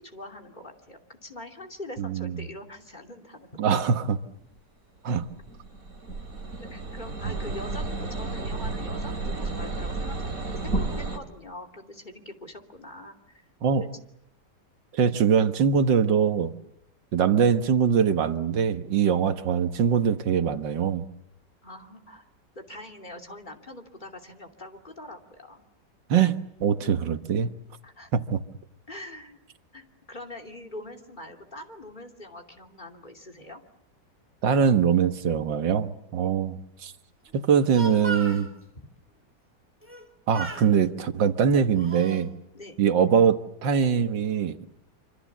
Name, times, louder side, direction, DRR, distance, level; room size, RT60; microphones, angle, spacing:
voice 1, 0.0-3.5 6.6-10.4 10.6-13.4 19.1-19.3 21.6-22.3 22.5-25.6 27.8-28.1 28.9-29.4 29.7-33.6 36.1-36.3 38.7-38.9 42.5-42.8, left 1 dB, 25° left, 3 dB, 2.9 m, -43 dB
voice 2, 2.0-2.3 3.6-4.2 5.0-5.2 7.2-7.3 13.6-13.9 14.9-16.5 17.1-21.0 26.1-26.3 26.6-27.5 28.1-28.4 34.4-36.9 37.3-38.5 40.3-42.3 42.8-44.7, right 7 dB, 85° right, 9 dB, 2.0 m, -22 dB
sound 1, 5.1-11.2, right 3 dB, 50° right, 3.1 m, -32 dB
Speech, 37.7-38.5 39.8-40.1 40.3-40.7 41.4-42.2, right 3 dB, 5° right, 3.0 m, -37 dB
26.5 x 26.5 x 7.3 m, 0.81 s
omnidirectional pair, 1.9 m